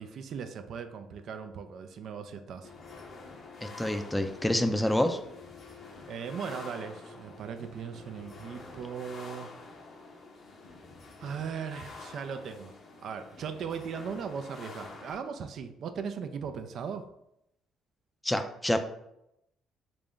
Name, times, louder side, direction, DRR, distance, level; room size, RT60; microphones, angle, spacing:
voice 1, 0.0-2.7 6.1-9.6 11.2-12.7 13.0-17.1, right 6 dB, 65° right, 8 dB, 0.3 m, -38 dB
sound 1, 2.6-15.2, left 3 dB, 50° left, 0.6 m, -47 dB
voice 2, 3.6-5.2 18.2-18.8, left 1 dB, 10° left, 8 dB, 0.4 m, -27 dB
3.3 x 2.5 x 3.6 m, 0.81 s
supercardioid pair, 60°, 0 cm